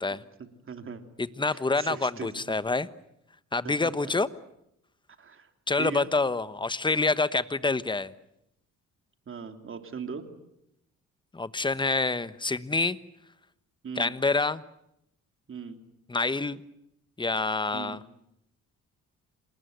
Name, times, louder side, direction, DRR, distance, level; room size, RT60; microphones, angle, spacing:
voice 1, 0.4-1.0 1.5-2.5 3.6-3.9 5.2-5.5 5.8-6.1 9.3-10.3 13.8-14.1 15.5-15.8 17.7-18.0, right 6 dB, 45° right, 7 dB, 3.0 m, -39 dB
voice 2, 1.2-2.9 3.5-4.3 5.7-8.1 11.3-13.0 14.0-14.6 16.1-16.6 17.2-18.0, left 3 dB, 15° left, 15 dB, 1.1 m, -27 dB
27.0 x 20.0 x 9.3 m, 0.81 s
cardioid pair, 90°, 30 cm